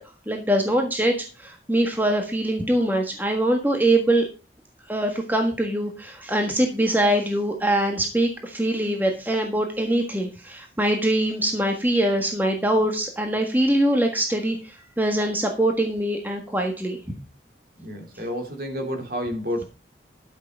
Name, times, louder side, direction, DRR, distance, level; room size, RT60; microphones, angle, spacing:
voice 1, 0.3-4.3 4.9-17.0, right 1 dB, 10° right, 3 dB, 1.5 m, -23 dB
voice 2, 17.8-19.6, equal, 55° right, 4 dB, 2.8 m, -30 dB
12.0 x 6.7 x 5.2 m, 0.32 s
head